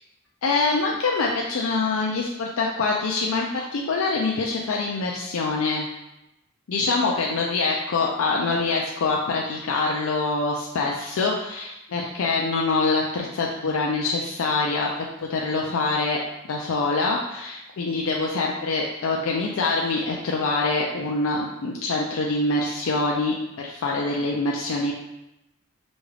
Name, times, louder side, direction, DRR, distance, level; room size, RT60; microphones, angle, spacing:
voice 1, 0.4-5.9 6.7-16.2 16.5-24.9, left 3 dB, 80° left, -1 dB, 0.4 m, -25 dB
5.1 x 2.3 x 3.2 m, 0.89 s
head